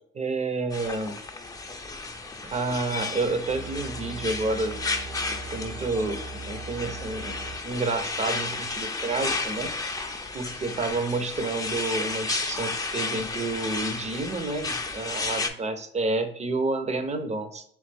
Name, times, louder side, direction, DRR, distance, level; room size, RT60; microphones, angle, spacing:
voice 1, 0.1-1.2 2.4-4.8 5.4-6.2 6.5-7.4 7.6-9.7 10.3-17.6, right 3 dB, 35° right, 8 dB, 0.7 m, -29 dB
sound 1, 0.7-15.5, left 3 dB, 20° left, 0.5 m, -33 dB
sound 2, 3.5-7.5, right 3 dB, 75° right, 1.0 m, -39 dB
3.5 x 3.2 x 3.4 m, 0.65 s
cardioid pair, 90°, 20 cm